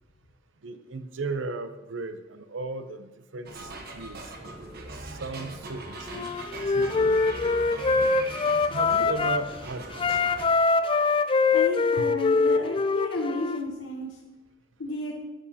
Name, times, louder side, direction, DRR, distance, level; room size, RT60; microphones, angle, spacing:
voice 1, 0.6-3.1 3.3-4.3 4.9-7.2 8.7-10.1 12.0-12.1, right 3 dB, 75° right, 9 dB, 0.7 m, -36 dB
sound 1, 3.5-10.5, right 2 dB, 55° right, 1.1 m, -40 dB
Wind instrument woodwind instrument, 6.1-9.5 9.9-13.6, left 4 dB, 25° left, 0.3 m, -24 dB
voice 2, 11.5-14.1 14.8-15.1, left 2 dB, 65° left, -2 dB, 1.1 m, -32 dB
12.5 x 7.2 x 2.8 m, 1.0 s
head